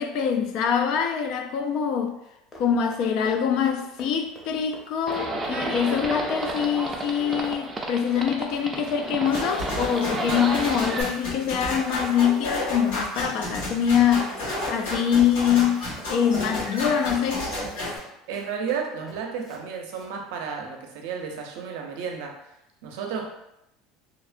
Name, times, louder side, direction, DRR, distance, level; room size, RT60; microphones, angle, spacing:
voice 1, 0.0-2.1 2.6-15.8 16.1-17.5, left 8 dB, 60° left, 0.3 m, -24 dB
Run, 2.2-19.6 19.9-20.1, equal, 25° left, 0.7 m, -48 dB
Livestock farm animals working animals, 5.1-11.0, right 2 dB, 20° right, 0.4 m, -31 dB
sound 1, 9.3-18.0, left 1 dB, 90° left, 1.2 m, -31 dB
voice 2, 18.3-22.4 22.8-23.3, right 6 dB, 75° right, 0.5 m, -32 dB
2.8 x 2.0 x 2.5 m
supercardioid pair, 105°, 0 cm